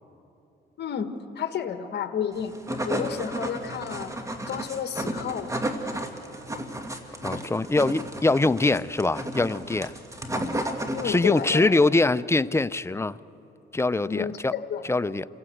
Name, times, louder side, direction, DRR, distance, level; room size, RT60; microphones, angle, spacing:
voice 1, 0.8-1.1 1.3-2.5 2.8-4.1 4.5-5.5 10.9-11.9 14.0-14.8, left 8 dB, 60° left, 8 dB, 1.5 m, -31 dB
sound 1, 2.4-11.5, right 1 dB, 15° right, 2.0 m, -33 dB
voice 2, 7.2-9.9 10.3-10.7 11.0-13.2 13.7-14.5 14.9-15.3, left 2 dB, 15° left, 16 dB, 0.5 m, -23 dB
28.5 x 16.0 x 7.9 m, 2.9 s
cardioid pair, 90°, 20 cm